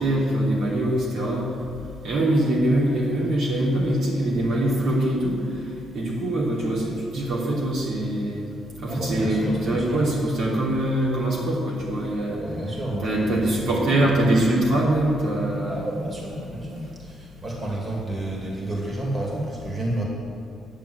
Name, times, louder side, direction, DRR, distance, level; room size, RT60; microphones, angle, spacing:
voice 1, 0.0-1.5 2.0-5.4 5.9-8.4 8.8-12.4 13.0-15.9, right 1 dB, 75° right, -5 dB, 3.1 m, -23 dB
voice 2, 8.9-10.0 12.4-14.1 15.7-20.0, right 1 dB, 35° right, -2 dB, 2.7 m, -30 dB
10.5 x 7.1 x 8.0 m, 2.4 s
cardioid pair, 90°, 0 cm